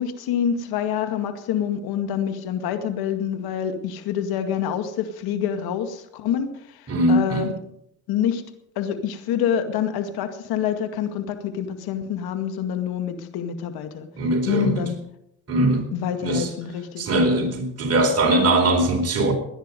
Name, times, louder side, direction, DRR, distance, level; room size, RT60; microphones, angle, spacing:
voice 1, 0.0-7.5 8.1-8.4 8.8-14.1 14.5-15.0 15.9-17.1, left 8 dB, 75° left, 8 dB, 2.1 m, -26 dB
voice 2, 6.9-7.4 14.2-14.8 15.5-15.9 16.2-16.5 17.0-19.3, right 1 dB, 40° right, 3 dB, 4.3 m, -21 dB
19.0 x 10.5 x 5.3 m, 0.77 s
supercardioid pair, 90°, 38 cm